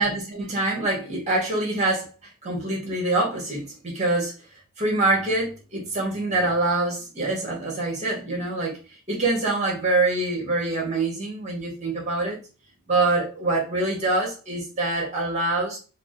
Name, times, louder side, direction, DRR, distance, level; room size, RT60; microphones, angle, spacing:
voice 1, 0.0-2.1 2.4-4.3 4.8-8.8 9.1-12.4 12.9-15.8, right 2 dB, 30° right, -2 dB, 1.4 m, -25 dB
4.6 x 2.1 x 2.6 m, 0.34 s
head